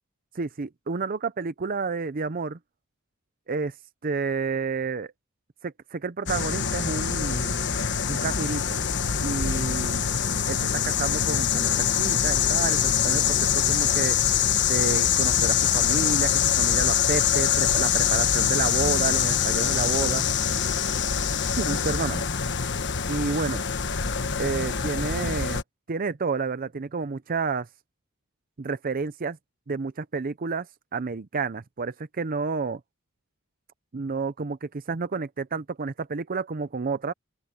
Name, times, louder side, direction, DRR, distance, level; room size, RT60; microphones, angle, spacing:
voice 1, 0.3-2.6 3.5-3.7 4.0-5.1 5.6-7.6 8.1-8.8 9.2-10.0 10.5-14.2 14.6-20.2 20.5-20.6 21.6-22.2 23.1-23.6 24.4-25.6 25.9-27.7 28.6-29.4 29.7-30.7 30.9-32.8 33.9-37.1, right 4 dB, 40° right, 0.6 m, -30 dB
sound 1, 6.3-25.6, left 8 dB, 55° left, 1.3 m, -24 dB
open air
head